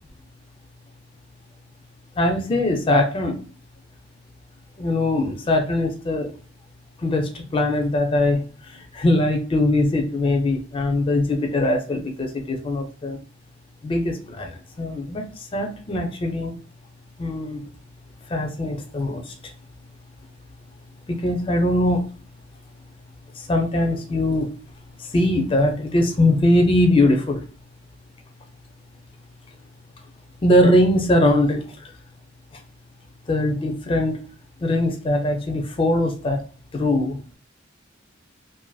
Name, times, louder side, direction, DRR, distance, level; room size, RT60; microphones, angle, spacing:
voice 1, 2.2-3.4 4.8-6.3 7.0-13.2 13.8-15.3 15.5-16.5 17.2-17.6 18.3-19.3 21.1-22.0 23.4-24.5 25.0-27.4 30.4-31.9 33.3-34.2 34.6-36.4 36.7-37.2, left 1 dB, 30° left, 3 dB, 0.4 m, -21 dB
2.5 x 2.5 x 2.2 m, 0.41 s
head